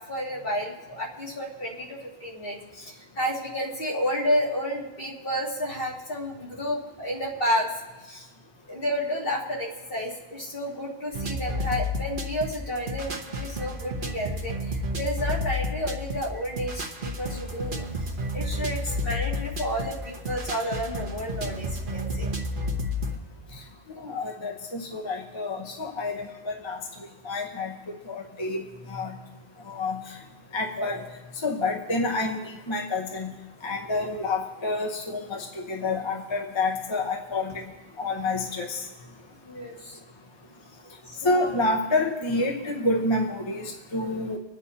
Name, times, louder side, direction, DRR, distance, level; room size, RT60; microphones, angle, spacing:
voice 1, 0.1-7.7 8.0-8.3 8.7-17.9 18.3-22.3 30.8-31.0 39.4-40.0 41.0-41.5, equal, 60° left, -4 dB, 2.4 m, -31 dB
sound 1, 11.1-23.2, left 1 dB, 55° right, 1.2 m, -31 dB
voice 2, 24.0-26.8 27.2-28.6 28.9-29.1 29.7-30.0 30.5-31.0 31.4-33.3 33.6-37.5 38.0-38.8 41.2-44.4, left 2 dB, 30° left, 1 dB, 0.9 m, -28 dB
25.0 x 9.1 x 2.8 m, 1.1 s
omnidirectional pair, 1.1 m